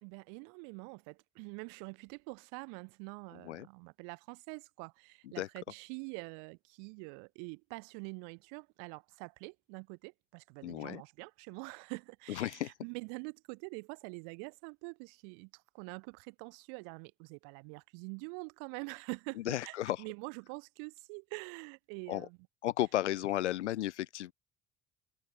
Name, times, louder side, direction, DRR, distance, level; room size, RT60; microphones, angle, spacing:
voice 1, 0.0-22.4, right 40 dB or more, 60° right, 1.4 m, -45 dB
voice 2, 10.6-11.0 12.3-12.7 19.5-20.0 22.1-22.3 22.6-24.3, left 14 dB, 75° left, 0.8 m, -33 dB
figure-of-eight pair, 55°, 35 cm